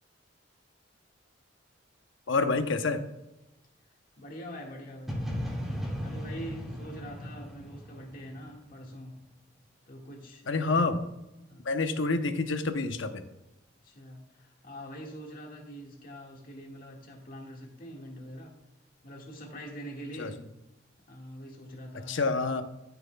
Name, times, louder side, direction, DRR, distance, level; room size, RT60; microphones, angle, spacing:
voice 1, 2.3-3.0 10.5-11.0 11.6-13.2 20.2-20.3 22.1-22.6, left 3 dB, 75° left, 8 dB, 0.8 m, -27 dB
voice 2, 4.2-5.2 6.0-9.2 9.9-10.7 11.5-11.6 13.8-18.6 19.0-20.4 21.1-22.2, equal, 45° left, 0 dB, 1.8 m, -44 dB
sound 1, 5.1-8.9, equal, ahead, 2.0 m, -36 dB
13.0 x 7.0 x 2.3 m, 0.93 s
head